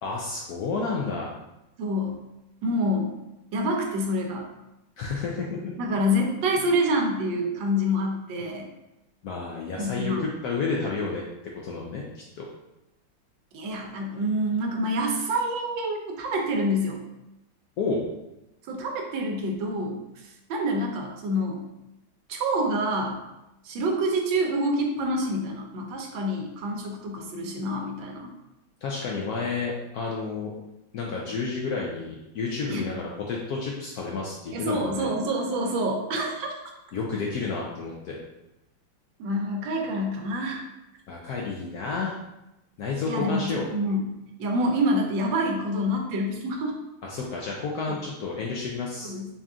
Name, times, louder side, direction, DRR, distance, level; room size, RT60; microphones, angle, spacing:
voice 1, 0.0-1.3 5.0-5.7 9.2-11.2 11.6-12.0 12.4-12.5 17.8-18.1 28.8-30.5 30.9-35.1 36.9-38.2 41.1-42.1 42.8-43.7 47.0-49.1, left 4 dB, 75° left, -2 dB, 0.9 m, -30 dB
voice 2, 1.8-2.2 2.6-3.1 3.5-4.5 5.8-8.7 9.8-10.3 13.5-17.0 18.7-20.0 20.5-21.6 22.3-23.2 23.6-28.3 32.7-32.9 34.5-36.5 39.2-40.6 43.1-44.1 44.4-46.7 47.9-48.0 49.0-49.3, equal, 80° right, 1 dB, 1.4 m, -27 dB
4.1 x 2.3 x 3.6 m, 0.93 s
omnidirectional pair, 2.0 m